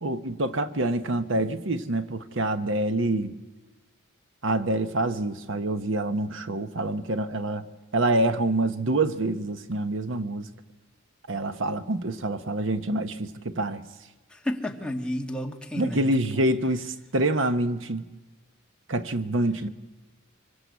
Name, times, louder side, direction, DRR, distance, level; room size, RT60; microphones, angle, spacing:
voice 1, 0.0-3.3 4.4-7.6 7.9-10.5 11.3-13.8 15.8-18.1 18.9-19.7, right 2 dB, 70° right, 1.0 m, -26 dB
voice 2, 14.3-16.1 16.3-16.5, left 1 dB, 5° left, 1.9 m, -31 dB
25.5 x 24.5 x 8.2 m
head